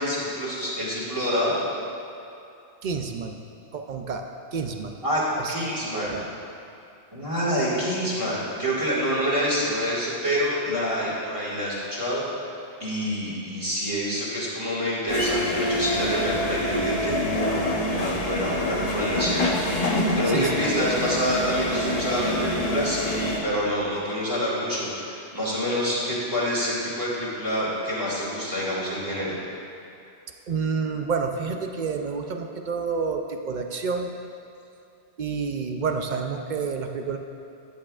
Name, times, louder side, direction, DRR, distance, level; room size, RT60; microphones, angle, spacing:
voice 1, 0.0-1.6 5.0-5.2 5.5-6.2 7.1-12.5 12.8-17.5 17.9-19.8 20.1-29.3, equal, 30° right, -9 dB, 2.1 m, -27 dB
voice 2, 2.8-3.4 3.7-4.2 4.5-4.9 5.4-5.5 5.9-6.2 20.3-20.7 30.5-34.1 35.2-37.2, right 5 dB, 55° right, 4 dB, 0.5 m, -29 dB
sound 1, 15.1-23.4, left 1 dB, 40° left, 0.9 m, -26 dB
12.5 x 8.7 x 2.4 m, 2.7 s
omnidirectional pair, 1.2 m